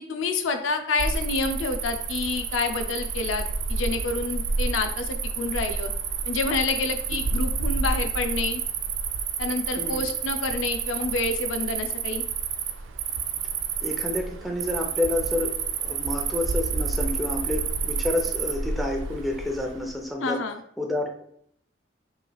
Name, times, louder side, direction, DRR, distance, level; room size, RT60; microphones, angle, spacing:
voice 1, 0.1-5.9 6.3-8.6 9.4-12.2 20.2-20.6, left 3 dB, 85° left, 6 dB, 0.5 m, -28 dB
Cricket, 1.0-19.9, right 5 dB, 85° right, 0.4 m, -29 dB
voice 2, 13.8-20.4 20.8-21.1, left 2 dB, ahead, 0 dB, 0.6 m, -29 dB
5.5 x 3.2 x 2.3 m, 0.66 s
head